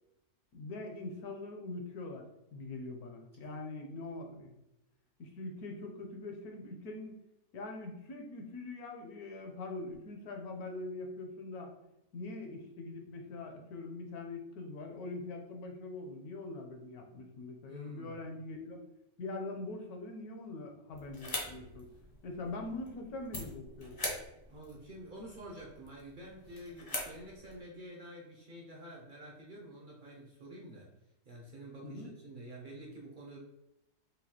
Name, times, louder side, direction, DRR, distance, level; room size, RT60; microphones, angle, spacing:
voice 1, 0.5-2.3 2.5-4.5 5.2-7.2 7.5-11.7 12.1-18.8 19.2-21.9 22.2-24.0 31.8-32.1, left 2 dB, 75° left, 3 dB, 1.2 m, -43 dB
voice 2, 17.7-18.3 24.5-30.9 31.3-33.4, right 1 dB, 60° right, -3 dB, 0.5 m, -49 dB
sound 1, 20.9-27.6, left 1 dB, 35° left, 0.3 m, -44 dB
5.0 x 2.2 x 2.9 m, 0.88 s
omnidirectional pair, 1.6 m